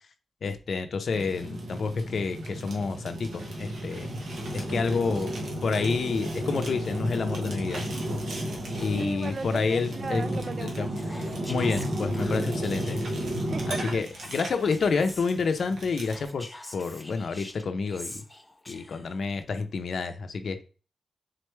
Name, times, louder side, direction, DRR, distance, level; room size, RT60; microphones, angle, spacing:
voice 1, 0.4-4.1 4.5-5.3 5.6-7.8 8.8-10.2 10.6-10.9 11.5-13.0 13.7-18.2 18.7-20.6, left 4 dB, 65° left, 0.6 m, -29 dB
Fire, 1.1-16.3, equal, 80° right, 1.2 m, -33 dB
voice 2, 8.9-11.4 13.5-14.0, right 4 dB, 45° right, 0.3 m, -37 dB
Whispering, 10.9-13.4 14.1-15.3 15.9-19.2, left 1 dB, 15° left, 0.6 m, -46 dB
3.9 x 3.3 x 3.2 m
cardioid pair, 90°, 0 cm